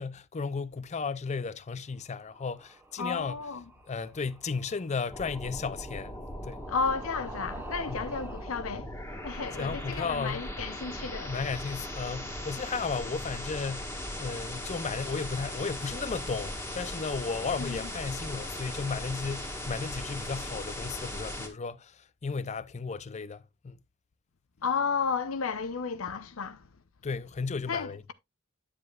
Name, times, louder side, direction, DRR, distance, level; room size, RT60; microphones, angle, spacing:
voice 1, 0.0-3.4 3.9-6.2 6.4-6.6 7.9-8.0 9.5-10.5 11.2-13.9 14.2-22.0 22.2-23.8 27.0-28.0, left 4 dB, 35° left, 0.5 m, -34 dB
sound 1, 1.9-8.6, right 2 dB, 10° right, 1.2 m, -50 dB
voice 2, 3.0-3.6 6.7-8.9 9.2-11.3 17.6-17.8 24.6-26.6 27.7-28.1, left 5 dB, 90° left, 0.8 m, -32 dB
sound 2, 5.1-21.5, left 1 dB, 10° left, 1.7 m, -38 dB
9.7 x 7.6 x 2.3 m
head